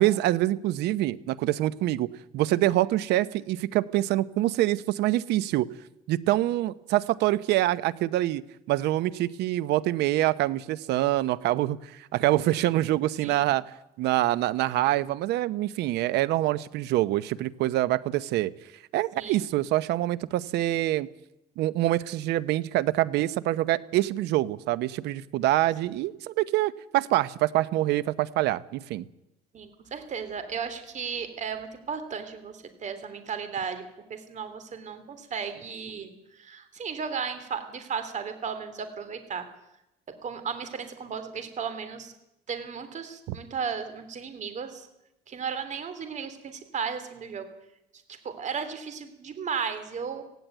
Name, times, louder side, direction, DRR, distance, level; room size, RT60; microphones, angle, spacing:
voice 1, 0.0-2.1 2.3-5.7 6.1-13.6 14.0-18.5 18.9-21.1 21.6-29.0 43.3-43.4, right 15 dB, 85° right, 17 dB, 0.9 m, -25 dB
voice 2, 29.5-33.8 34.1-39.5 40.2-42.1 42.5-44.9 45.3-47.5 48.1-50.2, right 6 dB, 45° right, 10 dB, 3.3 m, -35 dB
17.5 x 16.0 x 9.3 m, 0.87 s
cardioid pair, 110°, 17 cm